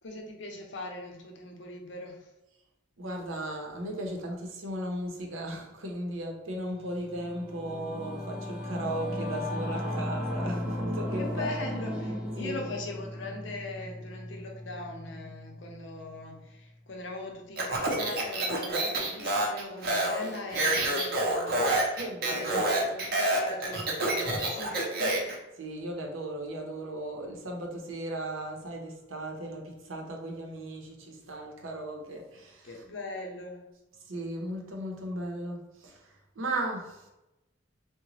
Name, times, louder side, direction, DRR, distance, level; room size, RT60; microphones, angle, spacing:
voice 1, 0.0-2.3 11.2-21.7 22.2-25.3 32.6-33.7, left 2 dB, 65° left, 1 dB, 0.7 m, -40 dB
voice 2, 3.0-11.6 12.4-12.6 21.9-22.7 25.6-32.8 34.0-37.1, right 1 dB, 90° right, 1 dB, 0.7 m, -36 dB
Singing / Musical instrument, 6.9-16.6, left 1 dB, 10° right, 0.7 m, -36 dB
Speech, 17.6-25.4, right 1 dB, 50° right, 0.6 m, -28 dB
3.8 x 2.1 x 3.1 m, 0.94 s
head